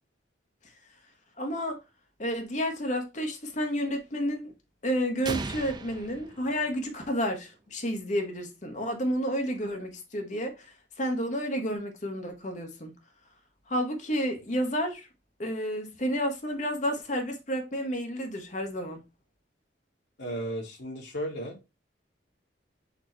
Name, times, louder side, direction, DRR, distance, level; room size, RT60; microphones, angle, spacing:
voice 1, 1.4-1.8 2.2-4.4 4.8-12.9 13.7-15.1 15.4-19.0, equal, 40° left, 1.0 m, -31 dB
sound 1, 5.2-7.2, right 3 dB, 25° right, 0.4 m, -37 dB
voice 2, 20.2-21.6, equal, 65° left, 1.7 m, -34 dB
4.3 x 2.9 x 4.3 m
head